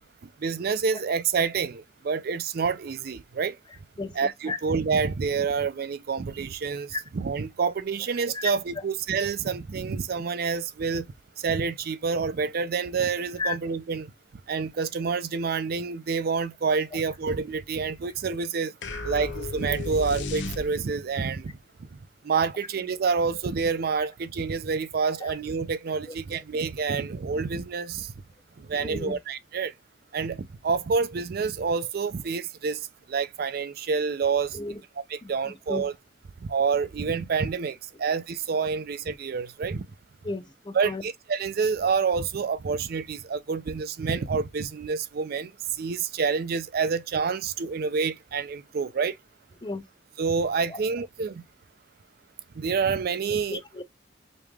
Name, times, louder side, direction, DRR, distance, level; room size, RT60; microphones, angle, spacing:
voice 1, 0.4-3.6 4.2-11.1 11.4-14.1 14.5-18.7 19.0-21.5 22.2-28.1 28.6-29.7 30.1-34.6 35.1-35.9 36.4-39.8 40.7-45.5 45.8-49.2 50.2-51.4 52.6-53.6, right 5 dB, 55° right, 0.4 m, -28 dB
voice 2, 3.7-4.6 6.9-7.0 8.0-8.9 13.4-13.6 16.9-17.0 18.9-19.2 24.0-24.1 26.0-26.4 28.8-29.2 34.5-34.8 35.2-35.9 40.2-41.0 49.6-49.8 50.7-51.1 53.5-53.8, left 3 dB, 25° left, 0.5 m, -35 dB
sound 1, 18.8-21.1, left 2 dB, 85° left, 0.8 m, -34 dB
5.2 x 3.1 x 2.3 m
head